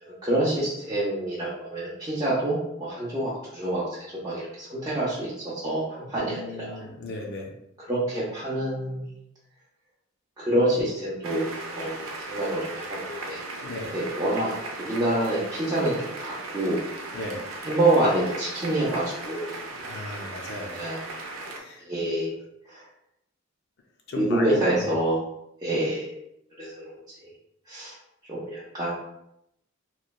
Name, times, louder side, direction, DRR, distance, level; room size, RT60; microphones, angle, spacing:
voice 1, 0.2-6.8 7.9-9.0 10.4-13.4 13.9-16.8 17.7-19.5 20.8-21.0 21.8-22.4 22.7-22.8 24.2-25.2 25.6-26.1 26.6-26.9 27.7-27.9 28.3-28.9, right 1 dB, 20° right, -10 dB, 0.6 m, -27 dB
voice 2, 6.2-7.5 13.6-14.0 17.1-17.5 19.8-20.8 21.6-21.9 24.1-24.9, left 2 dB, 60° left, 1 dB, 0.5 m, -36 dB
sound 1, 11.2-21.6, right 2 dB, 90° right, 0.5 m, -37 dB
3.0 x 2.1 x 2.3 m, 0.79 s
head